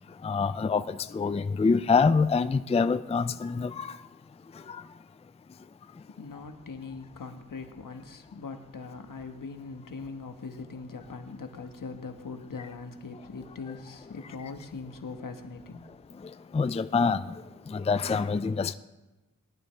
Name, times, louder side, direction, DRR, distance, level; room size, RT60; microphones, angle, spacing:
voice 1, 0.2-4.0 4.5-4.8 16.2-17.4 17.7-18.7, left 5 dB, 20° left, 0.4 m, -26 dB
voice 2, 6.2-15.9, left 4 dB, 80° left, 1.2 m, -41 dB
19.0 x 12.0 x 3.3 m
wide cardioid pair, 65°, 32 cm